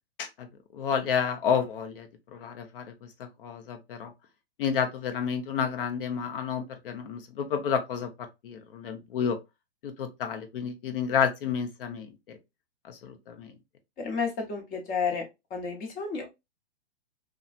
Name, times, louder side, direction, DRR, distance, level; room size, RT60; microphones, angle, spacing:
voice 1, 0.7-4.1 4.6-8.1 8.4-9.4 9.8-12.4 12.8-13.5, left 7 dB, 55° left, 0.8 m, -30 dB
voice 2, 14.0-15.2 15.5-16.4, left 5 dB, 25° left, 1.0 m, -31 dB
2.9 x 2.3 x 2.4 m
hypercardioid pair, 125°, 33 cm